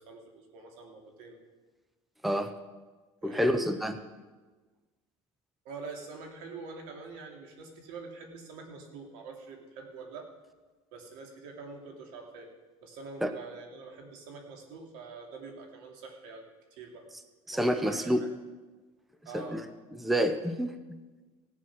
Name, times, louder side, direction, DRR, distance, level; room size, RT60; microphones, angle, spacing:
voice 1, 0.0-1.4 3.2-4.1 5.6-10.3 10.9-12.5 12.8-16.5 16.8-17.1 17.5-18.3 19.2-19.6, right 4 dB, 85° right, 2 dB, 2.6 m, -45 dB
voice 2, 2.2-2.5 3.2-3.9 13.2-13.3 17.5-18.2 19.3-19.6 20.0-20.7, equal, ahead, 8 dB, 0.6 m, -28 dB
17.5 x 7.4 x 6.0 m, 1.3 s
cardioid pair, 145°, 12 cm